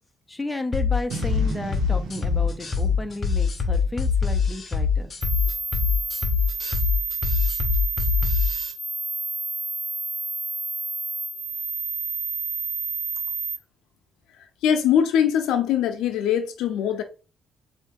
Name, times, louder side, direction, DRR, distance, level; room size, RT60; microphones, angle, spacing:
voice 1, 0.3-5.1, left 2 dB, 15° left, 0.7 m, -33 dB
sound 1, 0.7-8.7, left 5 dB, 40° left, 0.9 m, -23 dB
Boom, 1.1-4.4, right 3 dB, 85° right, 1.2 m, -36 dB
sound 2, 5.2-13.6, right 4 dB, 45° right, 1.5 m, -30 dB
voice 2, 14.6-17.0, left 9 dB, 90° left, 0.6 m, -22 dB
4.2 x 2.7 x 3.7 m
cardioid pair, 90°, 0 cm